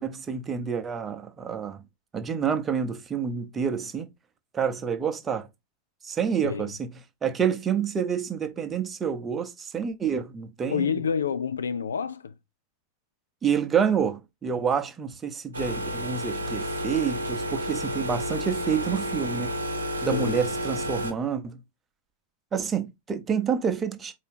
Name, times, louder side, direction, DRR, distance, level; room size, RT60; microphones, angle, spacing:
voice 1, 0.0-1.8 2.1-4.1 4.5-5.5 6.0-6.9 7.2-10.9 13.4-19.5 20.0-21.6 22.5-24.1, right 7 dB, 20° right, 0.7 m, -28 dB
voice 2, 10.7-12.3 20.0-20.5, left 6 dB, 70° left, 0.4 m, -28 dB
sound 1, 15.5-21.1, equal, 75° right, 0.7 m, -31 dB
4.5 x 2.7 x 3.4 m
figure-of-eight pair, 90°, 0 cm